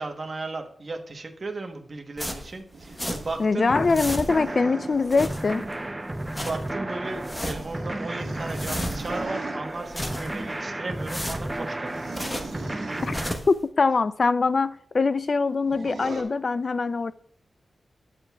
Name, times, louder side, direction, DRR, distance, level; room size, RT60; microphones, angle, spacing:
voice 1, 0.0-3.7 6.4-12.7, right 3 dB, 40° right, 1.0 m, -35 dB
sound 1, 2.2-3.5 3.7-4.6 4.9-5.8 6.1-6.7 7.1-7.8 8.2-9.3 9.7-10.5 10.9-12.6 13.0-13.6, equal, 15° left, 1.0 m, -35 dB
sound 2, 2.7-5.1 6.7-9.6 11.8-13.2 15.6-16.2, right 4 dB, 85° right, 1.4 m, -41 dB
voice 2, 3.4-5.7 13.1-13.2 13.5-17.1, left 4 dB, 50° left, 0.3 m, -23 dB
sound 3, 3.7-13.4, right 1 dB, 20° right, 0.6 m, -33 dB
11.5 x 7.6 x 2.3 m
wide cardioid pair, 85°, 0 cm